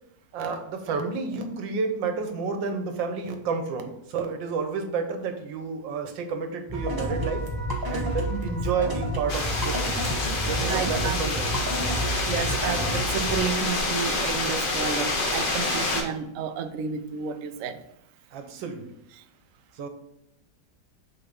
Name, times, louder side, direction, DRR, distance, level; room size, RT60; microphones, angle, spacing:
voice 1, 0.3-7.5 7.9-10.0 10.5-11.6 18.3-18.9 19.8-19.9, right 5 dB, 90° right, 1.6 m, -30 dB
sound 1, 6.7-13.4, equal, 20° right, 0.6 m, -30 dB
sound 2, 9.3-16.0, left 2 dB, 40° left, 0.8 m, -27 dB
voice 2, 10.7-11.3 12.2-17.8 19.2-19.3, right 7 dB, 70° right, 0.8 m, -31 dB
5.9 x 3.9 x 5.2 m
omnidirectional pair, 2.0 m